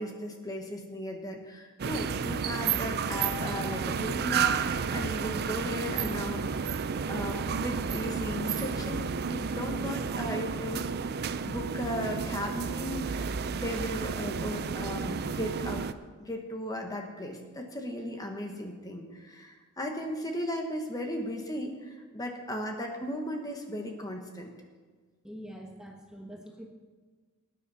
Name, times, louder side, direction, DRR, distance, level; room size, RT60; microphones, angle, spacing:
voice 1, 0.0-6.7 7.1-10.9 11.5-15.9 16.2-24.5, equal, 15° left, 3 dB, 1.2 m, -36 dB
sound 1, 1.8-15.9, right 6 dB, 45° right, 0.4 m, -31 dB
voice 2, 25.2-26.7, equal, 5° right, 0 dB, 1.1 m, -44 dB
18.5 x 9.7 x 4.2 m, 1.4 s
head